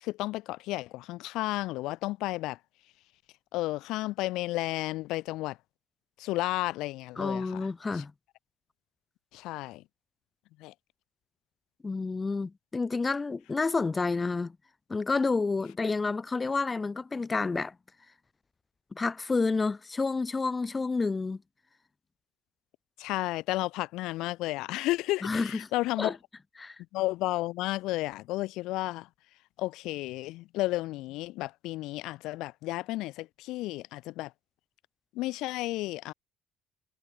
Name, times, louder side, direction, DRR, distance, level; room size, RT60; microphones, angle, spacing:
voice 1, 0.0-2.6 3.5-5.6 6.2-7.7 7.9-8.0 9.3-9.8 10.6-10.7 23.0-26.1 26.9-29.1 29.6-34.3 35.1-36.1, left 18 dB, 75° left, 1.0 m, -32 dB
voice 2, 7.2-8.1 11.8-14.6 14.9-17.7 18.9-21.4 25.2-25.6 26.0-26.1 26.6-26.8, left 4 dB, 25° left, 0.5 m, -29 dB
supercardioid pair, 85°, 0 cm